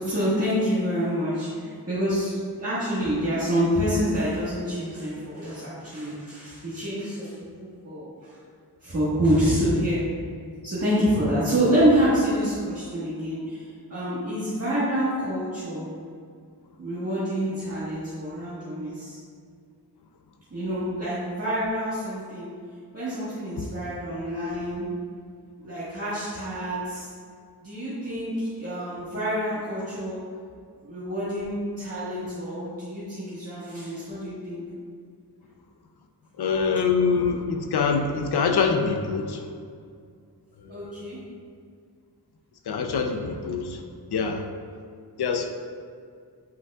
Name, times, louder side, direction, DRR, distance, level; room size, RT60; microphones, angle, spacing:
voice 1, 0.0-8.4 8.8-10.0 10.6-15.9 16.8-19.2 20.5-22.5 22.9-24.8 25.6-27.1 27.6-30.2 30.8-34.6 40.7-41.2, equal, 40° right, -11 dB, 1.6 m, -27 dB
voice 2, 36.4-39.5 40.6-41.1 42.7-43.8 44.1-44.5 45.2-45.5, left 5 dB, 80° left, 5 dB, 0.7 m, -25 dB
9.1 x 5.3 x 2.4 m, 2.2 s
wide cardioid pair, 155°, 38 cm